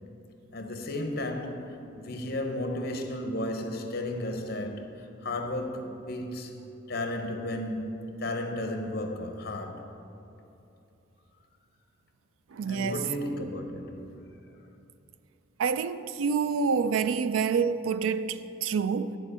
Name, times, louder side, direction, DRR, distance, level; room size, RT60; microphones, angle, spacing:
voice 1, 0.5-4.9 5.2-6.5 6.9-9.9 12.6-14.3, left 1 dB, 50° left, 0.9 m, -34 dB
voice 2, 12.5-13.0 15.6-19.2, right 5 dB, 85° right, 0.4 m, -27 dB
10.5 x 4.5 x 6.7 m
head